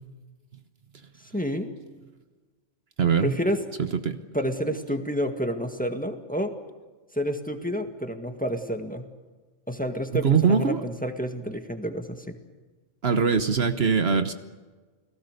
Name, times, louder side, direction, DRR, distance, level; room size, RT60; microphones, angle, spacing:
voice 1, 1.2-1.7 3.2-3.6 4.3-6.5 7.1-9.1 9.7-12.4, equal, 5° left, 5 dB, 1.7 m, -29 dB
voice 2, 3.0-3.3 4.0-4.2 10.2-10.8 13.0-14.3, right 6 dB, 60° right, 9 dB, 1.3 m, -22 dB
29.5 x 19.0 x 6.7 m, 1.4 s
omnidirectional pair, 1.2 m